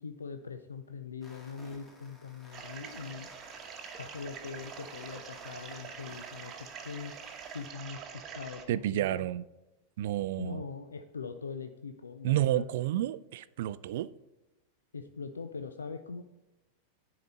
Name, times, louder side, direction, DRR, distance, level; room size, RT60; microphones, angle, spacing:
voice 1, 0.0-3.3 4.0-6.6 6.8-7.1 7.5-9.2 10.4-12.7 14.9-16.2, left 5 dB, 75° left, 0.5 m, -42 dB
sound 1, 1.2-7.7, left 1 dB, 15° left, 1.7 m, -56 dB
sound 2, 2.5-8.6, right 7 dB, 30° right, 1.0 m, -45 dB
voice 2, 8.7-9.4 10.0-10.6 12.2-14.1, right 14 dB, 55° right, 0.3 m, -30 dB
10.0 x 4.9 x 4.0 m
figure-of-eight pair, 90°, 0 cm